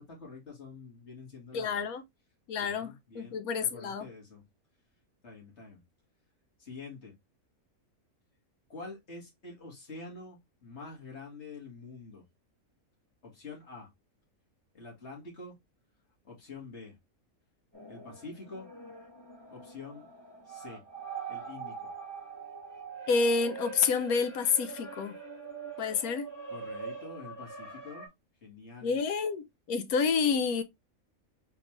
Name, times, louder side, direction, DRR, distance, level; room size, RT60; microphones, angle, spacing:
voice 1, 0.0-1.8 2.6-4.4 5.2-5.8 6.6-7.2 8.7-12.2 13.2-13.9 14.7-15.5 16.2-17.0 17.9-18.7 19.5-20.1 20.5-20.8 21.3-21.9 26.5-28.1 28.4-29.0, left 3 dB, 50° left, 2.1 m, -46 dB
voice 2, 1.5-2.0 2.5-4.1 23.1-25.2 25.8-26.3 28.8-30.6, left 5 dB, 85° left, 1.2 m, -29 dB
sound 1, 17.7-28.1, right 4 dB, 15° left, 1.5 m, -43 dB
3.8 x 3.6 x 3.0 m
omnidirectional pair, 1.5 m